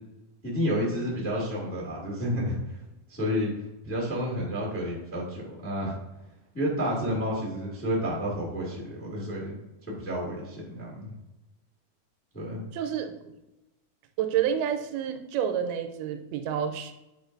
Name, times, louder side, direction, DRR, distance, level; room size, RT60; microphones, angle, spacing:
voice 1, 0.4-2.8 3.1-3.5 3.8-5.9 6.5-9.5 9.9-11.1 12.3-12.6, equal, 5° left, -3 dB, 1.1 m, -30 dB
voice 2, 12.7-13.1 14.2-16.9, right 9 dB, 85° right, 7 dB, 2.5 m, -29 dB
9.2 x 4.8 x 2.6 m, 1.0 s
omnidirectional pair, 4.4 m